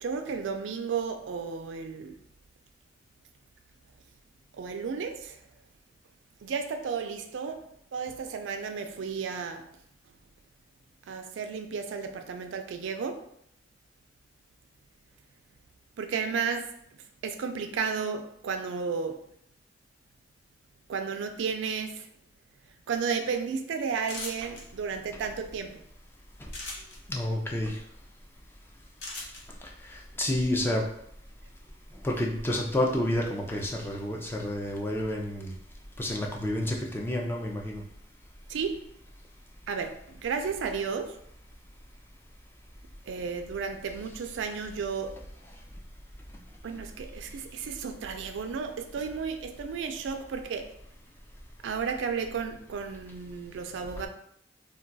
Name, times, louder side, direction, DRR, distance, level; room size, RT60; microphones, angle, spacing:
voice 1, 0.0-2.2 4.6-5.4 6.4-7.6 7.9-9.6 11.1-13.2 16.0-16.7 17.2-19.2 20.9-22.0 22.9-25.8 38.5-38.8 39.7-41.1 43.1-45.2 46.6-50.6 51.6-54.1, right 5 dB, 85° right, 6 dB, 0.3 m, -33 dB
sound 1, 24.0-24.6 26.5-27.0 29.0-29.4, left 2 dB, 65° left, 0.7 m, -38 dB
voice 2, 27.1-27.8 29.8-30.8 32.0-35.5 36.0-37.8, left 1 dB, 10° left, 0 dB, 0.4 m, -29 dB
2.3 x 2.2 x 3.8 m, 0.72 s
head